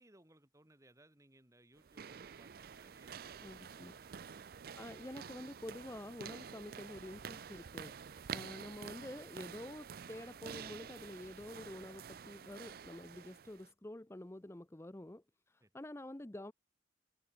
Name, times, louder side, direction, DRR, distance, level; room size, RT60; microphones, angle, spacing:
voice 1, 0.0-4.8 15.6-15.7, right 1 dB, 15° right, 2.3 m, -66 dB
sound 1, 1.8-13.7, right 7 dB, 50° right, 0.4 m, -49 dB
sound 2, 2.1-8.8, right 4 dB, 75° right, 0.8 m, -64 dB
voice 2, 3.4-4.0 4.8-16.5, left 1 dB, 15° left, 0.5 m, -48 dB
Sliding door / Slam, 14.2-14.3, left 1 dB, 35° left, 4.6 m, -73 dB
open air
head